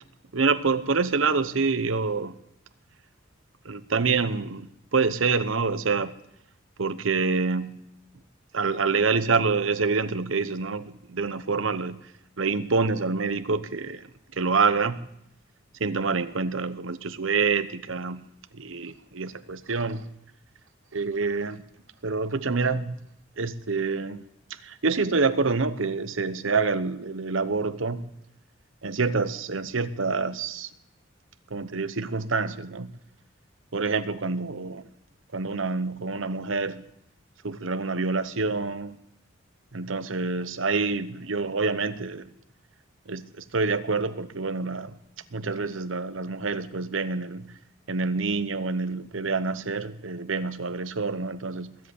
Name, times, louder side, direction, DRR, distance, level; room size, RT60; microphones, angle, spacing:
voice 1, 0.3-2.3 3.6-6.1 6.8-7.8 8.5-12.1 12.4-15.0 15.8-18.3 18.5-20.0 20.9-21.6 22.0-23.0 23.4-24.2 24.5-28.1 28.8-30.7 31.5-32.9 33.7-34.8 35.3-36.8 37.4-38.9 39.7-42.3 43.1-45.0 45.3-47.6 47.9-51.8, right 4 dB, 80° right, 0.9 m, -27 dB
21.5 x 7.9 x 8.5 m
head